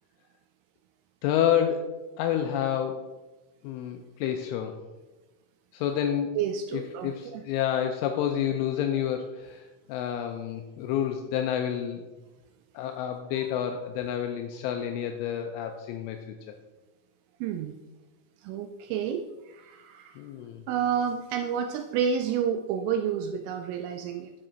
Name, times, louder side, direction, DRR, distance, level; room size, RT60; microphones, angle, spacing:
voice 1, 1.2-3.1 3.6-4.8 5.7-6.4 6.7-12.0 12.7-16.2 20.2-20.6, left 9 dB, 80° left, 5 dB, 2.9 m, -29 dB
voice 2, 6.3-7.4 13.4-13.5 17.4-17.8 18.4-20.2 20.7-24.3, right 7 dB, 85° right, 7 dB, 2.9 m, -30 dB
12.0 x 5.8 x 3.9 m, 1.1 s
omnidirectional pair, 5.9 m